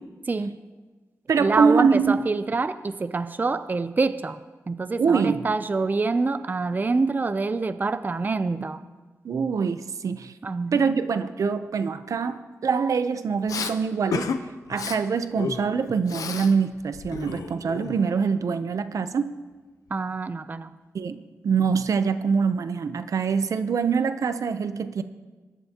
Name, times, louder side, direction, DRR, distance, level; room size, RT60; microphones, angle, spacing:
voice 1, 0.3-0.6 1.4-4.4 4.7-8.8 10.4-10.8 19.9-20.7, right 3 dB, 30° right, 12 dB, 0.5 m, -26 dB
voice 2, 1.3-2.2 5.0-5.4 9.2-10.3 10.7-14.3 14.7-19.3 20.9-25.0, right 5 dB, 70° right, 11 dB, 0.6 m, -24 dB
Respiratory sounds, 13.5-13.7 14.1-14.4 14.7-15.0 15.4-16.5 16.8-18.2, left 6 dB, 90° left, 0.8 m, -32 dB
21.0 x 11.5 x 2.9 m, 1.3 s
cardioid pair, 80°, 6 cm